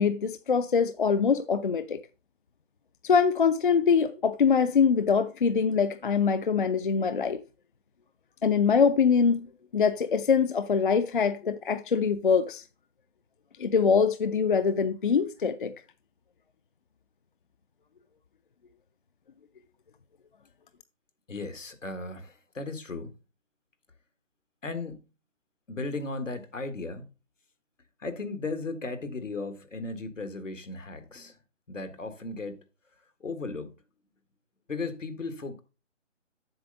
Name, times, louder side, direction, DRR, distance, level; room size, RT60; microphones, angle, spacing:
voice 1, 0.0-2.0 3.0-7.4 8.4-9.5 9.7-12.6 13.6-15.7, left 6 dB, 45° left, 0.4 m, -23 dB
voice 2, 21.3-23.1 24.6-25.1 25.7-27.1 28.0-31.4 31.7-32.6 33.2-33.7 34.7-35.6, left 3 dB, 90° left, 1.8 m, -36 dB
7.9 x 6.8 x 3.9 m
figure-of-eight pair, 150°, 37 cm